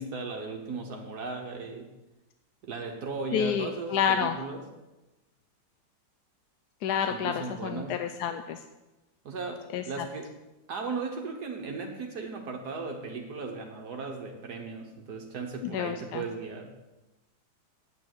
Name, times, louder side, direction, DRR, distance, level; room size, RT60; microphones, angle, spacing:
voice 1, 0.0-1.9 2.6-4.6 7.1-8.0 9.2-10.3 10.7-16.7, right 4 dB, 65° right, 2 dB, 1.7 m, -36 dB
voice 2, 3.3-4.4 6.8-8.6 9.7-9.8 15.6-16.2, left 8 dB, 75° left, 8 dB, 1.2 m, -29 dB
8.8 x 8.4 x 7.8 m, 1.1 s
omnidirectional pair, 1.8 m